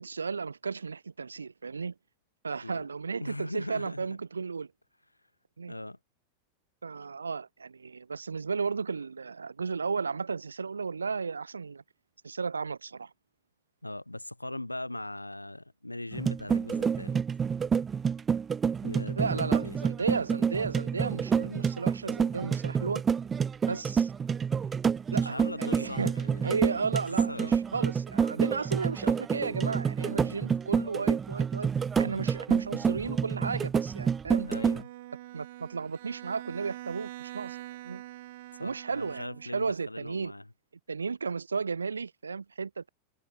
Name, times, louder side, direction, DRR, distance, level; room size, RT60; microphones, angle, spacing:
voice 1, 0.0-1.9 2.4-4.7 5.6-5.7 6.8-11.8 12.2-13.1 19.2-23.0 23.7-24.1 25.1-26.1 26.4-31.7 32.0-34.5 35.3-37.6 37.8-38.0 38.6-40.3 40.9-42.9, right 5 dB, 75° right, 0.6 m, -34 dB
voice 2, 3.2-4.2 5.7-6.0 13.8-17.2 18.8-19.8 25.1-26.6 27.1-27.6 34.5-34.9 38.6-40.5, left 1 dB, 85° left, 0.9 m, -40 dB
sound 1, 16.1-34.8, right 6 dB, 20° right, 0.3 m, -28 dB
Bowed string instrument, 34.4-39.7, right 16 dB, 55° right, 2.2 m, -45 dB
figure-of-eight pair, 90°, 0 cm